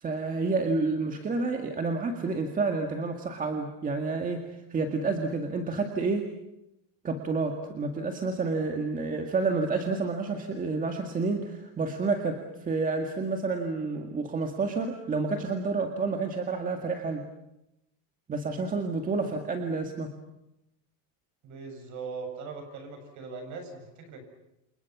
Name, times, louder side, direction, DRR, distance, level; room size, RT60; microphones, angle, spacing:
voice 1, 0.0-4.5 4.7-6.3 7.0-17.2 18.3-20.1, right 3 dB, 20° right, 4 dB, 2.0 m, -29 dB
voice 2, 21.4-24.2, right 4 dB, 45° right, 6 dB, 7.7 m, -40 dB
29.0 x 28.5 x 6.1 m, 0.86 s
cardioid pair, 160°, 41 cm